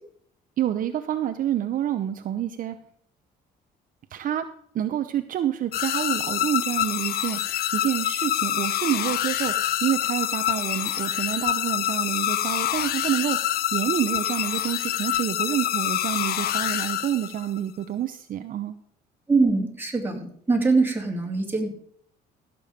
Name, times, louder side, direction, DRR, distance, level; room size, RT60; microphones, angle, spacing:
voice 1, 0.6-2.8 4.1-4.4 4.7-18.7, right 11 dB, 55° right, 8 dB, 0.8 m, -28 dB
sound 1, 5.7-17.6, left 12 dB, 65° left, 0.8 m, -26 dB
voice 2, 19.3-21.7, right 3 dB, 10° right, 1 dB, 3.2 m, -23 dB
15.5 x 7.0 x 5.1 m, 0.63 s
cardioid pair, 110°, 17 cm